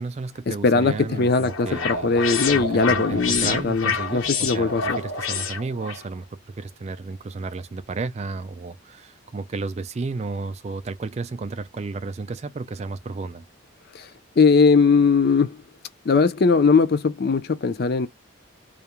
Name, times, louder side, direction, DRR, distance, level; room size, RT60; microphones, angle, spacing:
voice 1, 0.0-2.2 2.5-6.3 6.6-13.5, right 3 dB, 30° right, 0.3 m, -32 dB
voice 2, 0.6-5.0 13.9-14.1 14.4-15.6 16.1-18.1, left 4 dB, 50° left, 0.4 m, -20 dB
sound 1, 0.8-6.0, left 5 dB, 90° left, 1.0 m, -28 dB
2.4 x 2.1 x 2.9 m
head